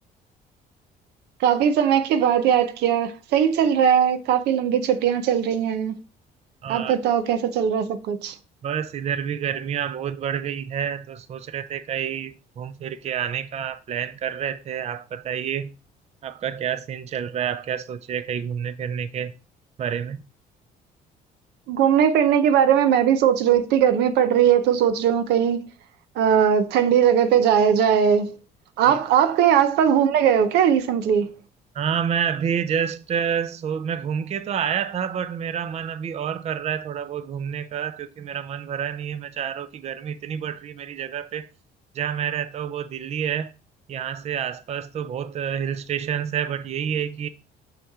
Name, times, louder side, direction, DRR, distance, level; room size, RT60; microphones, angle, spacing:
voice 1, 1.4-6.0 6.7-8.3 21.7-25.6 26.2-28.4 28.8-31.3, right 8 dB, 80° right, 0.7 m, -19 dB
voice 2, 6.6-7.0 8.6-15.7 16.2-19.3 19.8-20.2 28.9-29.0 31.7-41.5 41.9-43.5 43.9-47.3, right 8 dB, 40° right, 0.5 m, -28 dB
5.8 x 5.7 x 3.6 m
cardioid pair, 110°, 17 cm